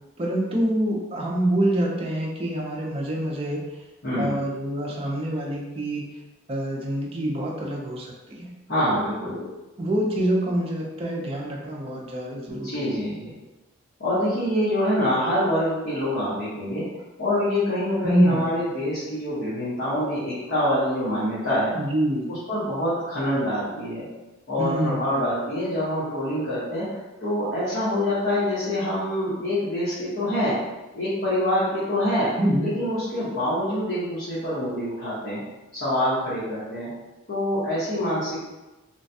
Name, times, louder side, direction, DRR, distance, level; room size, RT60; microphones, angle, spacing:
voice 1, 0.2-3.6 4.1-6.0 6.5-8.5 9.2-9.4 9.8-12.7 18.0-18.4 21.7-22.3 24.6-25.2 32.4-32.7, right 1 dB, 30° right, -1 dB, 0.4 m, -26 dB
voice 2, 8.7-9.4 12.5-13.3 14.0-16.9 17.2-21.7 22.3-24.0 24.5-30.6 30.9-32.3 32.6-35.4 35.7-36.9 37.3-38.4, left 1 dB, 55° left, -12 dB, 1.0 m, -25 dB
3.1 x 2.2 x 2.6 m, 1.1 s
head